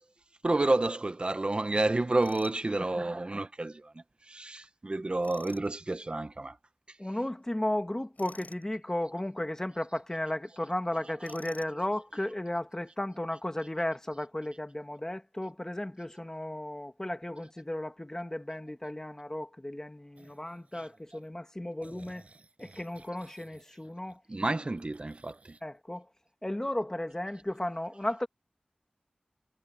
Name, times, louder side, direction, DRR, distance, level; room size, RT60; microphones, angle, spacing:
voice 1, 0.4-6.6 20.7-20.8 24.3-25.6, right 2 dB, 40° right, 1.3 m, -30 dB
Tools, 2.2-2.6 5.2-5.7 8.2-8.7 11.2-11.8, left 3 dB, 75° left, 6.4 m, -50 dB
voice 2, 7.0-22.2 22.6-24.2 25.6-26.1 26.4-28.3, left 1 dB, 20° left, 2.2 m, -34 dB
sound 1, 20.2-21.3 21.8-24.5 24.8-25.6, right 3 dB, 55° right, 6.7 m, -57 dB
wide cardioid pair, 60°, 3 cm